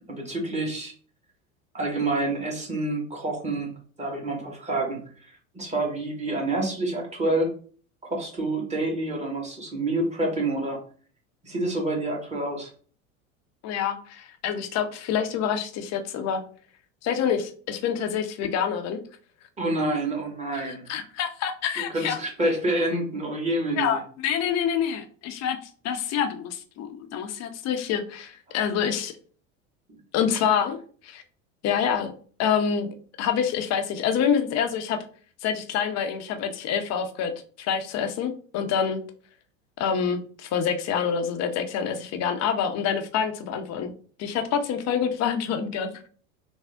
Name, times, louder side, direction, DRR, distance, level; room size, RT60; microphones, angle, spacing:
voice 1, 0.1-0.9 1.7-3.7 4.0-7.5 8.0-10.8 11.4-12.7 19.6-21.0 21.8-24.0, right 2 dB, 15° right, -1 dB, 1.4 m, -28 dB
voice 2, 13.6-16.4 17.0-19.0 20.5-22.2 23.8-25.6 25.8-29.1 30.1-30.8 31.0-31.2 31.6-32.1 32.4-35.0 35.4-37.3 37.6-39.0 39.8-43.9 44.2-46.1, left 7 dB, 40° left, 6 dB, 0.6 m, -27 dB
3.5 x 2.0 x 3.4 m, 0.42 s
hypercardioid pair, 90°, 41 cm